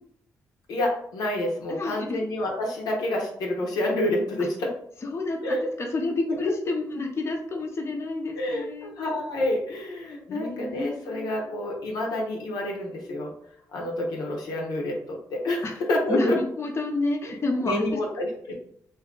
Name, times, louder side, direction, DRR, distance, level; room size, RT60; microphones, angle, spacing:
voice 1, 0.7-4.7 5.4-5.7 8.3-13.3 13.7-16.4 17.3-17.4 17.6-18.5, left 1 dB, 80° left, -1 dB, 0.7 m, -28 dB
voice 2, 1.7-2.2 5.1-8.9 10.3-11.3 15.6-15.7 16.1-18.0, left 2 dB, 40° left, 1 dB, 0.6 m, -29 dB
2.7 x 2.3 x 3.7 m, 0.66 s
cardioid pair, 65°, 7 cm